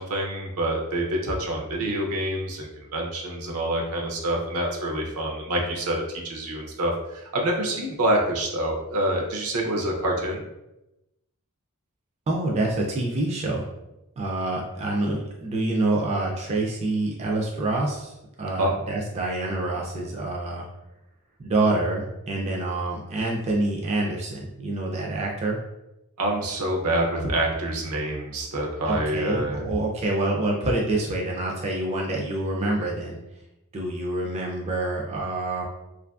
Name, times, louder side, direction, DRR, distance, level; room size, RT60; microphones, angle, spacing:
voice 1, 0.0-10.4 18.5-18.7 26.2-29.6, right 1 dB, 75° right, 0 dB, 0.6 m, -27 dB
voice 2, 12.3-13.6 14.2-20.7 21.4-25.6 28.9-33.2 33.7-35.6, right 2 dB, 30° right, -2 dB, 0.3 m, -27 dB
2.7 x 2.5 x 2.3 m, 0.92 s
head